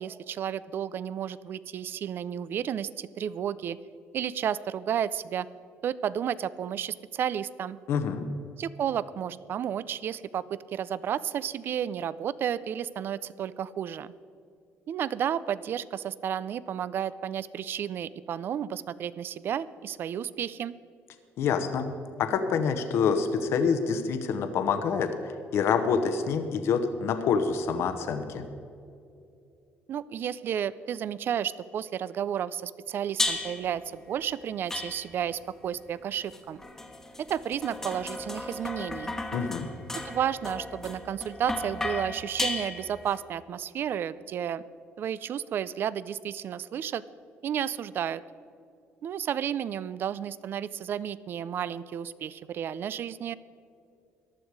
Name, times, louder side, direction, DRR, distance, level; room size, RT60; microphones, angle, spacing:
voice 1, 0.0-3.8 4.1-5.5 5.8-7.8 8.6-14.1 14.9-20.7 29.9-36.6 37.2-39.1 39.9-44.6 45.0-47.0 47.4-48.2 49.0-53.3, right 9 dB, 50° right, 18 dB, 0.4 m, -32 dB
voice 2, 7.9-8.2 21.4-21.9 22.2-28.4 39.3-39.7, left 6 dB, 65° left, 8 dB, 1.0 m, -27 dB
sound 1, 33.2-33.7 34.7-35.4 36.3-43.2, left 2 dB, 10° left, 1.2 m, -34 dB
15.0 x 11.5 x 4.7 m, 2.5 s
cardioid pair, 140°, 5 cm